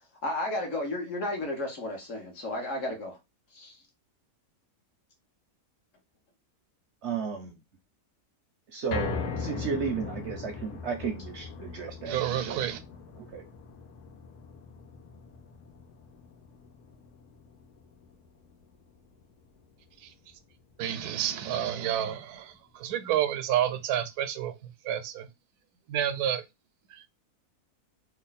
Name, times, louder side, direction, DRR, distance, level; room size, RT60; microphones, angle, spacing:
voice 1, 0.2-3.2 3.5-3.7, left 1 dB, 60° left, 1.4 m, -33 dB
voice 2, 7.0-7.5 8.7-12.6 13.2-13.4, right 6 dB, 65° right, 0.7 m, -34 dB
sound 1, 8.9-21.2 21.6-21.7 22.1-22.2, left 4 dB, 90° left, 1.2 m, -40 dB
voice 3, 12.1-12.8 20.8-24.5 24.8-25.3 25.9-26.4 26.9-27.0, right 11 dB, 85° right, 1.1 m, -29 dB
3.3 x 2.3 x 3.9 m
omnidirectional pair, 1.6 m